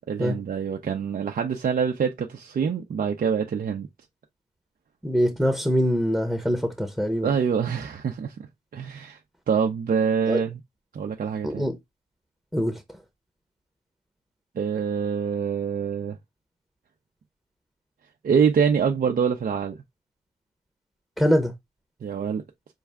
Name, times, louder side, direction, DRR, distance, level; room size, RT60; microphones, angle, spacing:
voice 1, 0.1-3.9 7.2-8.3 8.7-9.2 9.5-10.6 10.9-11.6 14.6-16.2 18.2-19.7 22.0-22.4, right 6 dB, 55° right, 0.6 m, -25 dB
voice 2, 5.0-7.3 10.3-10.4 11.4-11.8 12.5-12.8 21.2-21.5, equal, ahead, 0.9 m, -23 dB
5.4 x 2.3 x 3.5 m
cardioid pair, 70°, 17 cm